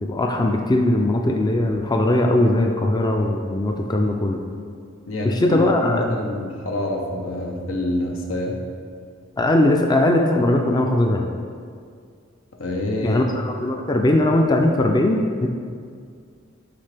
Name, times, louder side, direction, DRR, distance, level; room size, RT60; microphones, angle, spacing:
voice 1, 0.0-4.4 5.2-6.1 9.4-11.3 13.0-15.5, left 1 dB, 20° left, 2 dB, 0.4 m, -19 dB
voice 2, 5.1-8.6 12.6-13.2, left 1 dB, 85° left, 1 dB, 0.9 m, -26 dB
9.8 x 3.7 x 3.4 m, 2.1 s
head